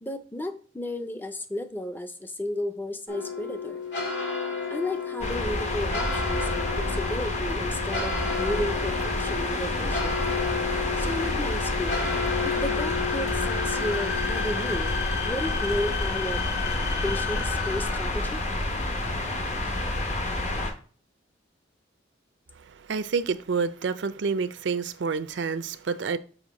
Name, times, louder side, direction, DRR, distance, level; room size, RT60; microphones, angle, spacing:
voice 1, 0.0-3.8 4.7-10.2 11.0-12.0 12.4-14.9 15.2-16.4 16.7-18.4, left 1 dB, 10° left, 0.5 m, -33 dB
sound 1, 3.1-20.7, left 5 dB, 80° left, 2.2 m, -34 dB
sound 2, 5.2-20.7, left 1 dB, 40° left, 0.9 m, -29 dB
sound 3, 8.2-18.4, left 6 dB, 60° left, 0.5 m, -36 dB
voice 2, 22.9-26.2, right 5 dB, 75° right, 0.5 m, -28 dB
6.4 x 3.0 x 5.2 m
head